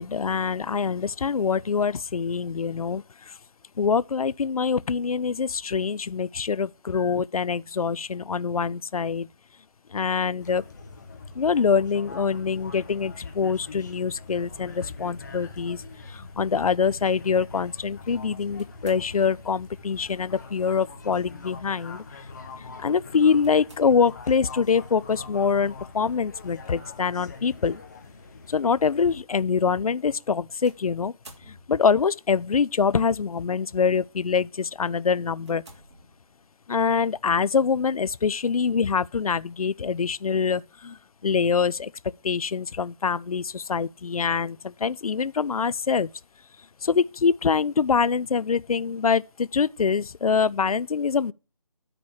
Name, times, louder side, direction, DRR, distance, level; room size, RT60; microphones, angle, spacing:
voice 1, 0.0-3.0 3.8-9.3 9.9-10.6 11.4-15.8 16.1-22.0 22.6-27.8 28.5-31.1 31.5-35.6 36.7-41.0 41.2-41.9 42.2-46.1 46.8-51.3, left 6 dB, 70° left, 0.4 m, -24 dB
sound 1, 10.4-29.2, left 3 dB, 30° left, 1.4 m, -43 dB
sound 2, 18.6-19.6 20.8-21.2 21.7-21.8 23.4-24.3 26.4-26.7 27.5-27.6 30.6-32.1 33.0-33.4 34.0-34.2 34.7-34.8 35.4-36.6, right 1 dB, 50° right, 2.7 m, -52 dB
9.7 x 4.3 x 6.3 m
figure-of-eight pair, 165°, 19 cm